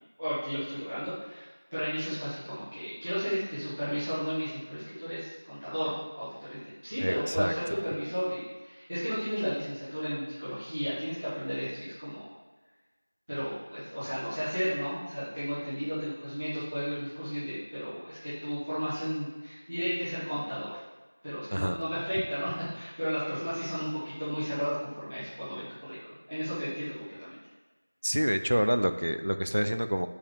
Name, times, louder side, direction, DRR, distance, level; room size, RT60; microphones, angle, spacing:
voice 1, 0.2-1.4 1.7-12.3 13.3-20.8 21.2-27.4, equal, 10° right, -16 dB, 1.3 m, -34 dB
voice 2, 7.0-7.5 21.5-21.8 28.0-30.1, equal, 40° right, 9 dB, 0.4 m, -27 dB
5.3 x 5.0 x 6.5 m, 1.2 s
figure-of-eight pair, 180°, 0 cm